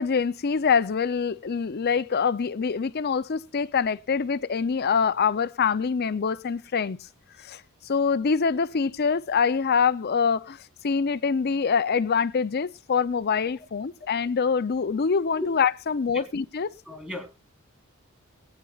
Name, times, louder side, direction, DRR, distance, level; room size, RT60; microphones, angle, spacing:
voice 1, 0.0-7.0 7.4-10.6 10.8-16.8, left 6 dB, 50° left, 0.5 m, -25 dB
voice 2, 16.9-17.4, left 1 dB, 5° right, 3.6 m, -35 dB
23.0 x 9.1 x 2.4 m
head